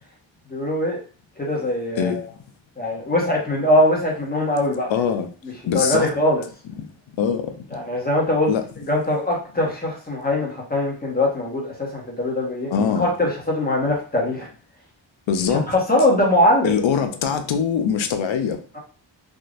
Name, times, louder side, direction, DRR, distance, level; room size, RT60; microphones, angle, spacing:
voice 1, 0.5-1.0 1.4-2.2 2.8-4.9 5.7-6.4 7.7-8.5 8.9-14.5 15.7-16.7, left 1 dB, 20° left, 1.2 m, -21 dB
voice 2, 4.9-5.3 5.7-6.1 6.8-6.9 7.2-7.5 8.5-8.6 12.7-13.1 15.3-15.7 16.6-18.6, left 7 dB, 85° left, 0.6 m, -22 dB
3.7 x 2.6 x 2.5 m
cardioid pair, 70°, 45 cm